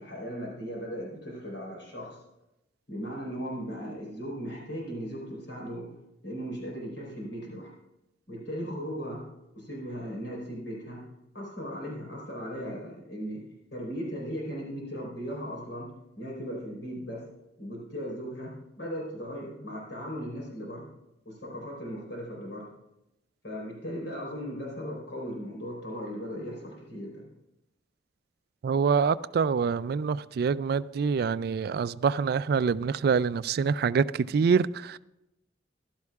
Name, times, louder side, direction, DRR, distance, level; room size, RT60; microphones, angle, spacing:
voice 1, 0.0-2.2 2.9-5.9 6.2-7.7 8.3-9.2 9.6-11.0 11.3-13.4 13.7-15.9 16.2-17.2 17.6-20.9 21.3-22.7 23.4-27.2, equal, 85° left, 4.1 m, -37 dB
voice 2, 28.6-35.0, right 5 dB, 60° right, 0.3 m, -26 dB
15.0 x 12.0 x 2.4 m
head